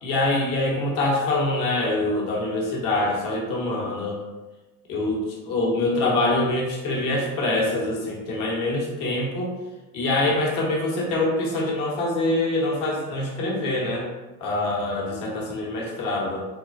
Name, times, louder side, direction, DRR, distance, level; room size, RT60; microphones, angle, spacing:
voice 1, 0.0-4.2 4.9-9.5 9.9-14.1 14.4-16.5, left 2 dB, 45° left, -2 dB, 1.0 m, -25 dB
3.6 x 2.2 x 2.5 m, 1.1 s
figure-of-eight pair, 70°, 43 cm